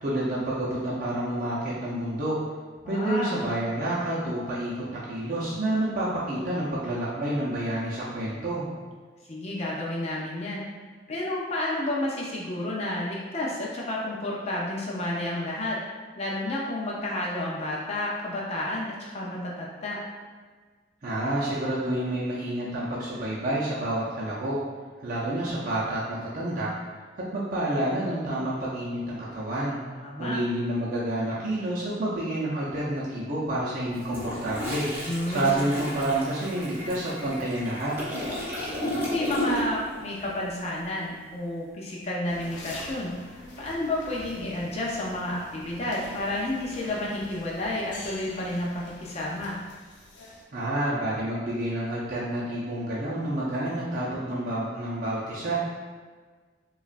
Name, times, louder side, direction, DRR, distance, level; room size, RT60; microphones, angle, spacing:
voice 1, 0.0-2.3 2.9-8.7 21.0-24.6 25.0-26.7 27.2-29.8 30.2-34.9 35.3-38.0 50.5-55.6, right 1 dB, 50° right, -7 dB, 0.6 m, -29 dB
voice 2, 2.8-3.4 9.3-10.7 11.1-15.8 16.2-20.0 29.9-30.4 35.1-35.6 38.9-43.1 43.6-49.6, left 1 dB, 35° left, -4 dB, 0.6 m, -31 dB
Toilet flush, 33.9-39.9 40.2-40.5, equal, 15° right, 0.9 m, -33 dB
sound 1, 42.2-50.4, left 1 dB, 75° left, 0.7 m, -46 dB
5.0 x 2.4 x 2.5 m, 1.5 s
head